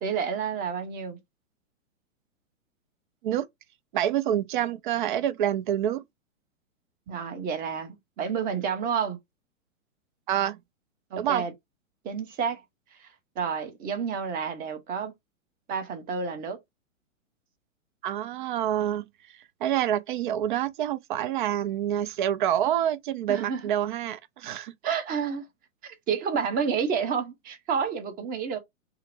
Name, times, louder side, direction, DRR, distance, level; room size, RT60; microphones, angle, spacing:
voice 1, 0.0-1.2 7.1-9.2 11.1-11.5 12.0-12.6 13.0-13.1 13.4-15.1 15.7-16.6 23.3-23.6 24.8-25.5 25.8-28.6, right 6 dB, 20° right, 0.8 m, -30 dB
voice 2, 3.9-6.0 10.3-10.6 11.2-11.4 18.0-19.0 19.6-24.7, right 11 dB, 40° right, 0.4 m, -27 dB
5.6 x 2.0 x 2.5 m
hypercardioid pair, 120°, 40 cm